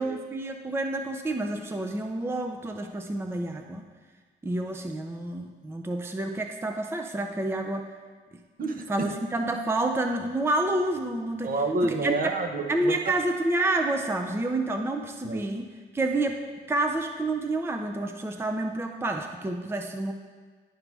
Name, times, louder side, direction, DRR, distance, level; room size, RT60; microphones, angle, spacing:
voice 1, 0.0-3.8 4.4-7.9 8.9-11.5 11.8-12.1 12.7-16.4 16.7-20.1, right 2 dB, 10° right, 5 dB, 0.5 m, -29 dB
voice 2, 8.6-9.1 11.4-13.1 15.2-15.4, right 3 dB, 45° right, 5 dB, 0.8 m, -29 dB
11.0 x 4.9 x 3.3 m, 1.5 s
cardioid pair, 90°, 20 cm